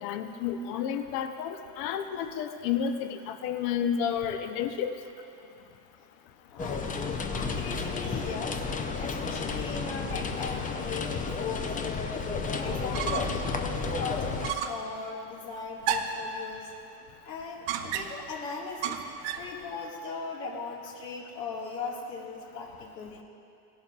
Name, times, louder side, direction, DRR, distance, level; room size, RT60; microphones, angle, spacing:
voice 1, 0.0-4.9, left 8 dB, 60° left, 7 dB, 1.0 m, -31 dB
voice 2, 6.5-8.6 9.0-11.8 12.5-16.7 17.2-19.0 19.4-23.2, left 4 dB, 85° left, -3 dB, 2.1 m, -39 dB
sound 1, 6.6-14.5, left 4 dB, 15° left, 0.5 m, -32 dB
sound 2, 12.7-13.5 13.8-13.9 14.4-14.9 15.8-16.3 17.7-18.3 18.8-19.5, right 8 dB, 60° right, 1.0 m, -32 dB
17.0 x 11.5 x 2.4 m, 2.7 s
supercardioid pair, 105°, 48 cm